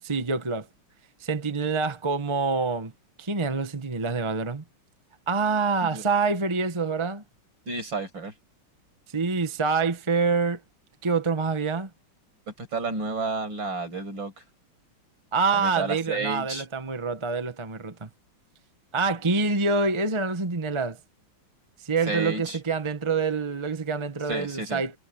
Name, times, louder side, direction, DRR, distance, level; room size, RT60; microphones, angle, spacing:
voice 1, 0.0-0.7 1.2-2.9 3.2-4.6 5.3-7.2 9.1-10.6 11.0-11.9 15.3-18.1 18.9-21.0 21.8-24.9, right 4 dB, 20° right, 0.9 m, -26 dB
voice 2, 7.7-8.3 12.5-14.3 15.5-16.6 22.1-22.6 24.3-24.8, right 3 dB, 65° right, 6.6 m, -31 dB
omnidirectional pair, 2.2 m